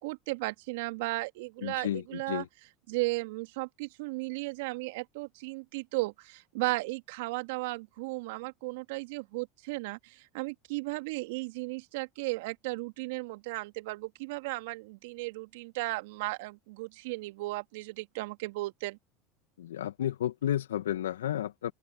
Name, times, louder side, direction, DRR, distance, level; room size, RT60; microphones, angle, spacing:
voice 1, 0.0-2.4 2.9-19.0, right 23 dB, 65° right, 2.2 m, -35 dB
voice 2, 1.6-2.5 19.6-21.7, left 11 dB, 80° left, 1.7 m, -32 dB
open air
hypercardioid pair, 80°, 0 cm